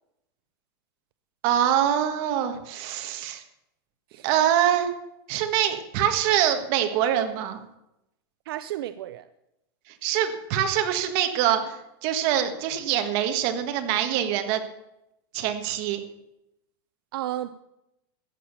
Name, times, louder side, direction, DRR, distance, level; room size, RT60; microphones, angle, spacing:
voice 1, 1.4-3.4 4.2-4.9 5.3-7.6 9.9-14.6 15.3-16.0, right 10 dB, 40° right, 7 dB, 1.5 m, -24 dB
voice 2, 8.5-9.3 17.1-17.6, right 13 dB, 70° right, 13 dB, 0.6 m, -33 dB
14.5 x 8.8 x 7.0 m, 0.87 s
supercardioid pair, 175°, 13 cm